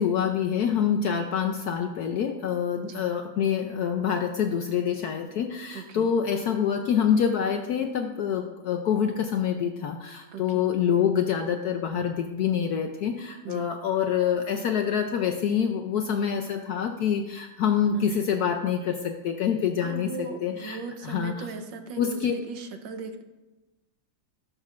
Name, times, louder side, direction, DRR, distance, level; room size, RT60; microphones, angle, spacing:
voice 1, 0.0-21.5 22.0-22.3, left 8 dB, 70° left, 4 dB, 0.9 m, -26 dB
voice 2, 5.7-6.2 10.3-10.7 13.4-13.7 17.9-18.2 19.8-23.2, right 5 dB, 70° right, 7 dB, 1.4 m, -38 dB
19.0 x 6.5 x 2.5 m, 1.1 s
omnidirectional pair, 2.2 m